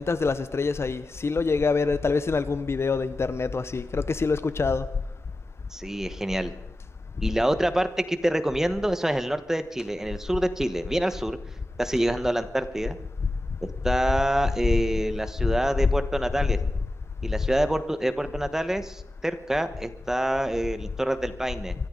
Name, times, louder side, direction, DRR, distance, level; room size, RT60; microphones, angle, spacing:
voice 1, 0.0-4.8, left 4 dB, 45° left, 13 dB, 0.7 m, -25 dB
voice 2, 5.7-6.5 7.2-11.4 11.8-13.0 13.6-16.6 17.2-21.7, right 1 dB, 5° right, 10 dB, 1.3 m, -26 dB
24.5 x 13.5 x 3.9 m, 0.91 s
wide cardioid pair, 100°, 6 cm